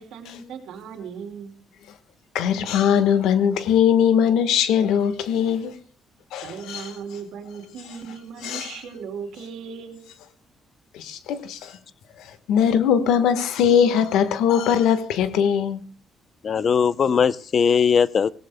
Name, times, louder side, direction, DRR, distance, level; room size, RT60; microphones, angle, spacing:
voice 1, 0.0-1.5 6.4-10.0, right 6 dB, 85° right, 3.0 m, -37 dB
voice 2, 2.3-5.7 6.3-6.9 8.4-8.7 10.9-11.7 12.5-15.8, left 8 dB, 90° left, 1.3 m, -20 dB
voice 3, 16.4-18.3, left 6 dB, 50° left, 0.6 m, -19 dB
25.0 x 17.5 x 2.2 m
cardioid pair, 90°, 0 cm